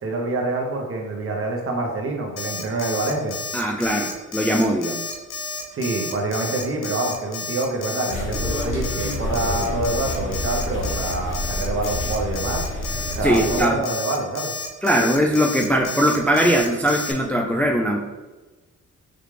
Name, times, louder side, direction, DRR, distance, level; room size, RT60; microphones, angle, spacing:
voice 1, 0.0-3.4 5.7-12.7 13.2-14.5, right 2 dB, 45° right, 1 dB, 0.9 m, -26 dB
Alarm, 2.4-17.1, left 4 dB, 90° left, 0.6 m, -31 dB
voice 2, 3.5-5.0 13.2-13.8 14.8-18.1, equal, 5° left, 0 dB, 0.4 m, -20 dB
sound 1, 8.1-13.6, left 1 dB, 40° left, 1.1 m, -28 dB
4.9 x 2.3 x 3.2 m, 1.2 s
cardioid pair, 80°, 32 cm